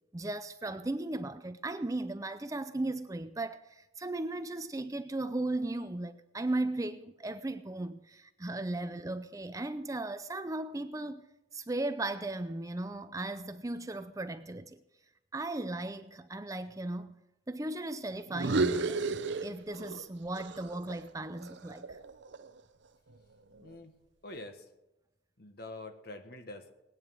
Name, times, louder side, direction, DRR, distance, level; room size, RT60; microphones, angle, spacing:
voice 1, 0.1-11.3 11.5-14.8 15.3-19.0 19.4-22.0, right 2 dB, 15° right, 0.5 m, -36 dB
sound 1, 18.3-20.1 20.4-22.6, right 3 dB, 60° right, 0.7 m, -33 dB
voice 2, 23.6-23.9 24.2-24.6 25.4-26.7, left 2 dB, 50° left, 1.5 m, -45 dB
20.0 x 9.3 x 6.3 m
head